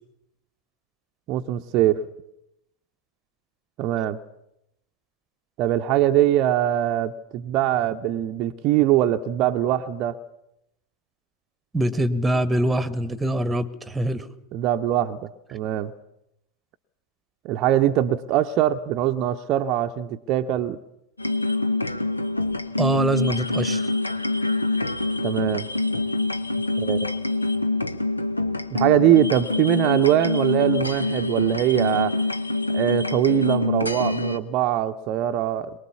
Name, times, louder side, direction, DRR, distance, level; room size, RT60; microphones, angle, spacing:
voice 1, 1.3-2.0 3.8-4.2 5.6-10.2 14.5-15.9 17.4-20.8 25.2-25.7 26.8-27.0 28.7-32.1 32.7-35.7, right 12 dB, 40° right, 6 dB, 0.7 m, -22 dB
voice 2, 11.7-14.3 22.8-23.9, right 1 dB, 10° right, 17 dB, 1.2 m, -24 dB
sound 1, 21.2-34.4, left 2 dB, 80° left, 1.1 m, -25 dB
23.0 x 21.0 x 7.1 m, 0.83 s
figure-of-eight pair, 90°, 0 cm